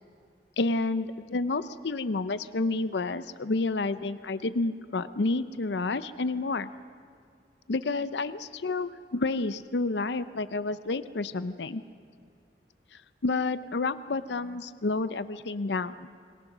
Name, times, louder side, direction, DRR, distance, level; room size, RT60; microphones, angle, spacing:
voice 1, 0.6-6.7 7.7-11.8 13.2-16.1, left 3 dB, 80° left, 13 dB, 0.6 m, -30 dB
29.0 x 22.5 x 6.1 m, 2.3 s
head